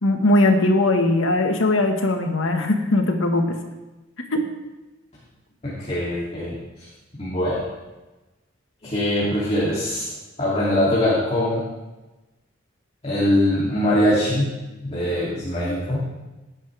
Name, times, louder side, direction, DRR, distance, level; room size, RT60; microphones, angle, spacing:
voice 1, 0.0-3.4 4.3-4.4, left 2 dB, 90° left, 4 dB, 1.7 m, -19 dB
voice 2, 5.6-6.6 7.2-7.6 8.8-10.0 10.4-11.6 13.0-14.6 14.8-16.0, left 1 dB, 35° left, -8 dB, 3.0 m, -22 dB
18.0 x 10.0 x 3.5 m, 1.1 s
head